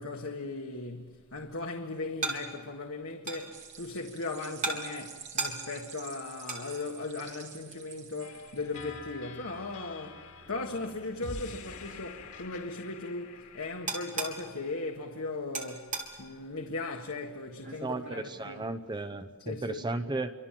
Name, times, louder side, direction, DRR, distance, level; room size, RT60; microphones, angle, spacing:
voice 1, 0.0-18.7 19.4-19.9, left 3 dB, 75° left, 1.7 m, -38 dB
sound 1, 0.7-19.3, right 3 dB, 35° right, 4.0 m, -42 dB
sound 2, 3.5-9.0, right 8 dB, 55° right, 3.1 m, -49 dB
sound 3, 8.2-14.4, left 3 dB, 90° left, 2.5 m, -47 dB
voice 2, 17.8-20.3, right 2 dB, 20° right, 0.9 m, -35 dB
29.0 x 25.0 x 7.6 m
head